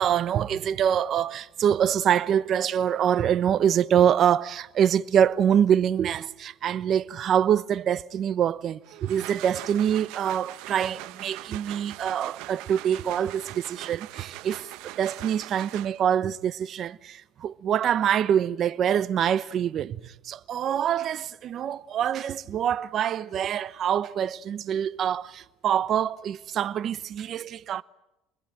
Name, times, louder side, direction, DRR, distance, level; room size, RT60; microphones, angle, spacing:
voice 1, 0.0-27.8, right 9 dB, 40° right, 0.9 m, -25 dB
sound 1, 8.8-16.2, right 18 dB, 70° right, 0.9 m, -41 dB
28.0 x 21.5 x 9.0 m
cardioid pair, 145°, 0 cm